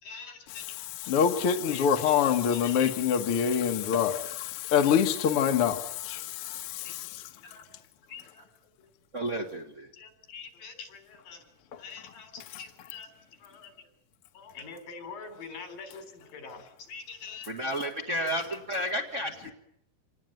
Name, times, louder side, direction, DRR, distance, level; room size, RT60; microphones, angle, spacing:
voice 1, 0.0-3.1 4.2-4.3 6.8-6.9 7.4-7.6 8.1-8.4 8.8-8.9 9.9-11.4 11.8-13.1 13.4-13.9 14.3-17.9 18.4-18.6, left 5 dB, 85° left, 5.6 m, -45 dB
voice 2, 1.1-7.2, left 8 dB, 50° left, 2.0 m, -25 dB
voice 3, 9.1-9.9 17.5-18.4 18.7-19.5, equal, 25° right, 1.8 m, -31 dB
27.0 x 19.0 x 9.2 m
omnidirectional pair, 3.9 m